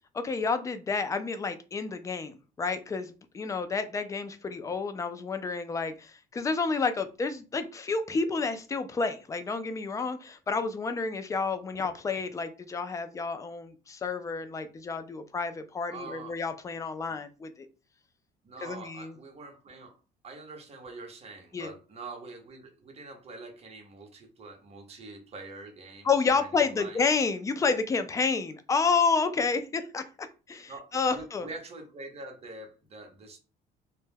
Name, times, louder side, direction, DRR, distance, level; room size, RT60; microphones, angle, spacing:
voice 1, 0.1-17.7 18.6-19.1 21.5-21.7 26.1-31.5, left 4 dB, 20° left, 0.3 m, -30 dB
voice 2, 15.9-16.4 17.1-17.2 18.4-27.0 30.7-33.4, right 3 dB, 40° right, 0.8 m, -45 dB
2.2 x 2.1 x 3.2 m
cardioid pair, 110°, 17 cm